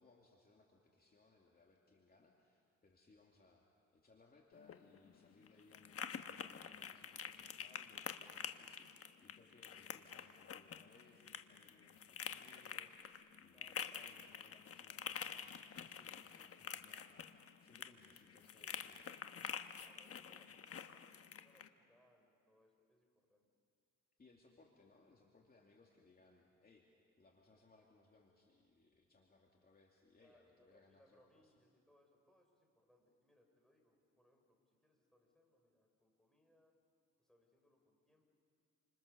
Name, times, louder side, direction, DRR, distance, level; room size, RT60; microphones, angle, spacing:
voice 1, 0.0-3.7 3.9-19.3 20.1-20.5 24.2-26.9 27.2-31.5, left 3 dB, 30° left, -1 dB, 2.7 m, -68 dB
sound 1, 4.5-21.7, left 7 dB, 50° left, 1.2 m, -48 dB
voice 2, 13.5-14.2 19.8-23.5 30.2-36.7 37.2-38.2, left 1 dB, ahead, 1 dB, 6.2 m, -73 dB
29.0 x 26.5 x 6.9 m, 2.3 s
cardioid pair, 90°, 30 cm